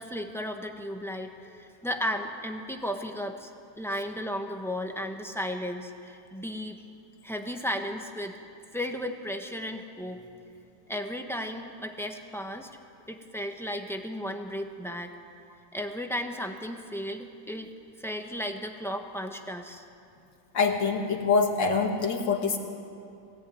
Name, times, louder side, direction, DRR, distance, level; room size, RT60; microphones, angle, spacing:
voice 1, 0.0-6.8 7.2-8.4 8.7-10.2 10.9-12.7 13.1-15.2 15.7-17.7 18.0-19.8, equal, ahead, 4 dB, 0.8 m, -34 dB
voice 2, 20.5-22.6, left 4 dB, 60° left, 3 dB, 2.6 m, -25 dB
21.5 x 17.5 x 9.4 m, 2.5 s
omnidirectional pair, 2.3 m